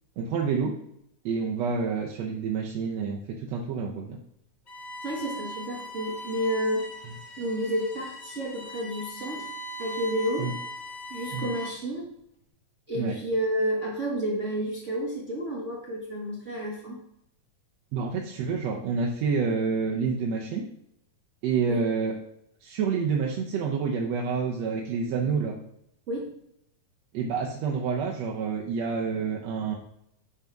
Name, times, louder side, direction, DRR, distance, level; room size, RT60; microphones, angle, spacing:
voice 1, 0.2-0.8 1.3-4.2 10.4-10.5 11.3-11.5 12.9-13.2 17.9-20.6 21.4-22.1 22.6-25.6 27.1-29.7, right 5 dB, 70° right, -1 dB, 1.9 m, -28 dB
Bowed string instrument, 4.7-11.9, equal, 55° left, 0.5 m, -39 dB
voice 2, 5.0-6.9 7.4-9.5 9.8-10.5 11.1-12.1 12.9-17.0 21.7-21.8 26.1-26.3, equal, 35° right, -5 dB, 1.2 m, -30 dB
10.5 x 4.1 x 4.6 m, 0.77 s
omnidirectional pair, 3.5 m